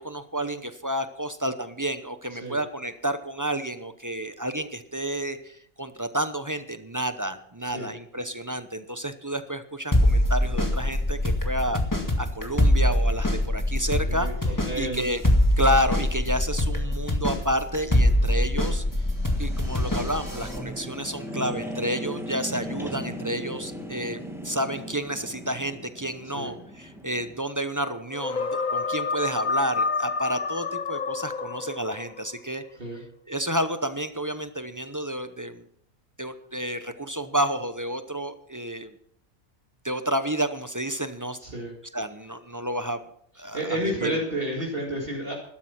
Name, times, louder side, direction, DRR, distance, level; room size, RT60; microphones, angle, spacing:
voice 1, 0.0-11.8 12.2-15.2 15.6-18.8 19.4-32.6 33.3-35.6 36.2-38.9 39.8-41.4 41.9-43.0 43.4-44.1, equal, 20° right, 10 dB, 0.6 m, -30 dB
sound 1, 9.9-20.6, left 1 dB, 15° left, 2.0 m, -24 dB
voice 2, 14.1-15.0 26.3-26.5 32.8-33.0 41.4-41.7 43.5-45.3, right 1 dB, 45° right, -2 dB, 2.6 m, -31 dB
sound 2, 17.6-27.4, equal, ahead, 1.7 m, -38 dB
sound 3, 28.1-32.2, left 4 dB, 40° left, 0.8 m, -29 dB
13.0 x 12.5 x 5.8 m, 0.68 s
omnidirectional pair, 1.4 m